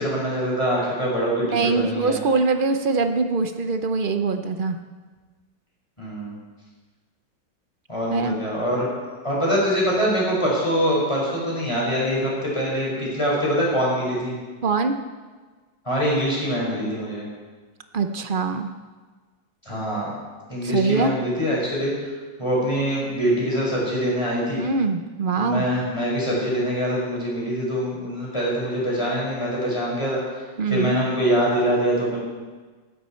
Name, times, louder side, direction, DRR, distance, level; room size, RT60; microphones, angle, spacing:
voice 1, 0.0-2.2 6.0-6.4 7.9-14.3 15.8-17.3 19.7-20.1 20.5-22.1 22.4-24.6 25.4-32.2, equal, 15° left, -5 dB, 5.6 m, -24 dB
voice 2, 1.5-4.8 8.1-8.4 14.6-15.0 17.9-18.7 20.6-21.1 24.6-25.7 30.6-31.0, right 4 dB, 60° right, 7 dB, 0.5 m, -23 dB
16.0 x 12.5 x 4.4 m, 1.4 s
omnidirectional pair, 1.9 m